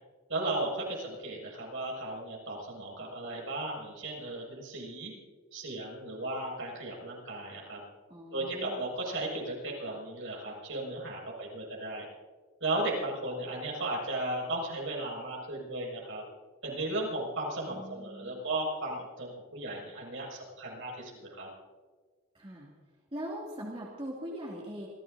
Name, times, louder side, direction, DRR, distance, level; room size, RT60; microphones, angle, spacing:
voice 1, 0.3-5.1 5.5-7.8 8.3-12.0 12.6-16.2 16.6-21.5, right 2 dB, 70° right, -2 dB, 6.4 m, -35 dB
voice 2, 8.1-8.9 17.7-18.3 22.3-22.7 23.1-24.9, equal, 25° right, -4 dB, 2.7 m, -41 dB
28.0 x 16.0 x 2.8 m, 1.5 s
head